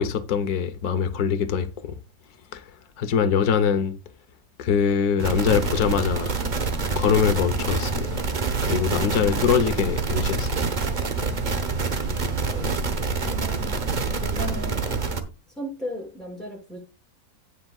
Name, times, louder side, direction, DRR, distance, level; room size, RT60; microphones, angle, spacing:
voice 1, 0.0-1.9 2.5-2.6 3.0-3.9 4.6-6.3 6.9-8.2 8.6-10.5, left 7 dB, 85° left, 1.4 m, -23 dB
sound 1, 5.2-15.2, right 4 dB, 35° right, 1.0 m, -26 dB
voice 2, 13.3-13.9 14.2-14.9 15.5-16.8, left 1 dB, ahead, 6.2 m, -35 dB
17.5 x 6.0 x 2.3 m
omnidirectional pair, 1.6 m